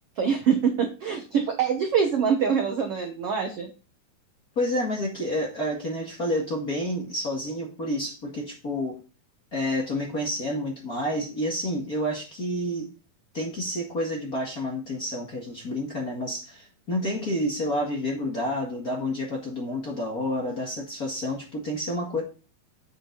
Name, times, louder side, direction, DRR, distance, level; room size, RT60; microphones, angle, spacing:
voice 1, 0.2-3.7, right 7 dB, 65° right, 4 dB, 1.5 m, -24 dB
voice 2, 4.5-9.0 9.5-12.9 13.3-22.2, left 1 dB, 35° left, -1 dB, 1.8 m, -29 dB
7.9 x 7.8 x 4.0 m, 0.33 s
omnidirectional pair, 4.2 m